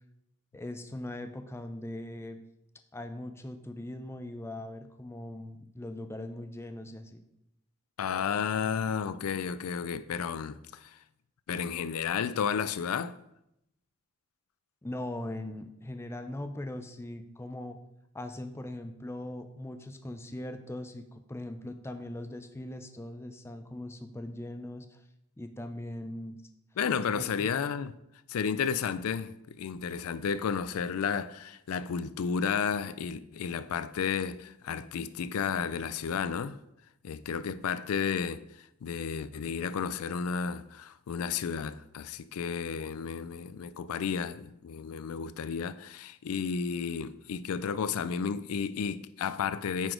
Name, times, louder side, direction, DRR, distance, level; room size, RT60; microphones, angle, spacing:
voice 1, 0.5-2.4 2.9-7.2 14.8-17.8 18.1-25.0 25.4-26.4 27.1-27.5, left 1 dB, 10° left, 0.5 m, -40 dB
voice 2, 8.0-11.0 11.5-13.2 26.8-27.9 28.3-36.6 37.0-49.9, left 6 dB, 75° left, 0.4 m, -32 dB
9.1 x 4.0 x 5.0 m
head